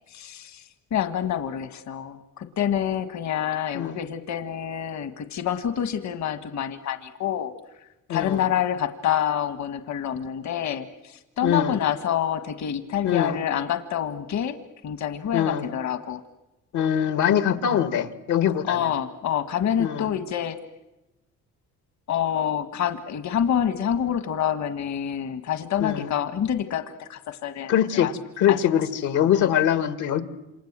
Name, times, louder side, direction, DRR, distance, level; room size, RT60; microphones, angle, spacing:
voice 1, 0.1-7.5 8.1-14.6 14.8-16.2 17.6-17.8 18.7-20.6 22.1-28.1 28.5-28.6 29.3-29.5, left 9 dB, 65° left, 9 dB, 1.6 m, -27 dB
voice 2, 8.1-8.4 11.4-11.8 13.0-13.4 15.3-15.7 16.7-18.9 19.8-20.1 25.8-26.1 27.7-28.1 28.4-30.2, left 9 dB, 85° left, 11 dB, 1.9 m, -23 dB
28.5 x 26.5 x 7.5 m, 0.99 s
cardioid pair, 90°, 30 cm